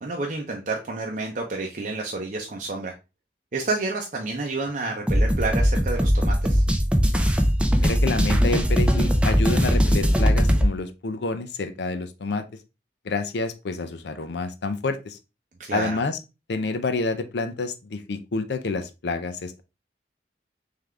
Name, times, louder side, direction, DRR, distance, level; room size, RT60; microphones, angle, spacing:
voice 1, 0.0-2.9 3.5-6.6 15.6-16.0, right 3 dB, 45° right, 0 dB, 0.7 m, -29 dB
sound 1, 5.1-10.7, equal, 5° right, 0.5 m, -20 dB
voice 2, 7.8-12.4 13.0-15.2 15.7-16.2 16.5-19.6, left 3 dB, 75° left, 9 dB, 0.5 m, -28 dB
3.7 x 3.5 x 3.3 m, 0.27 s
head